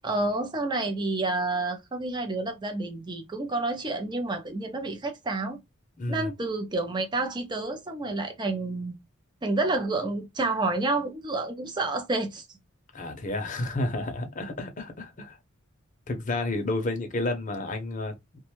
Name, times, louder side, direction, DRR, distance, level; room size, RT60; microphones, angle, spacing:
voice 1, 0.0-5.6 6.1-9.0 9.4-12.5, right 2 dB, 20° right, 0.5 m, -29 dB
voice 2, 6.0-6.3 12.9-15.4 16.1-18.2, left 2 dB, 35° left, 0.6 m, -31 dB
2.5 x 2.2 x 2.9 m
head